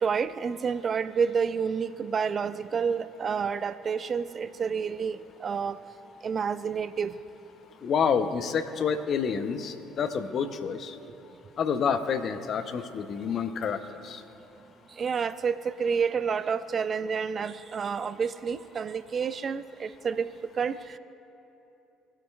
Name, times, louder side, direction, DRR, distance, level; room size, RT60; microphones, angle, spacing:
voice 1, 0.0-5.8 6.2-7.2 15.0-21.0, right 6 dB, 40° right, 15 dB, 0.4 m, -29 dB
voice 2, 7.8-10.9 11.6-13.8 14.0-14.2, left 6 dB, 50° left, 10 dB, 0.7 m, -28 dB
19.0 x 8.6 x 2.3 m, 2.9 s
hypercardioid pair, 55°, 0 cm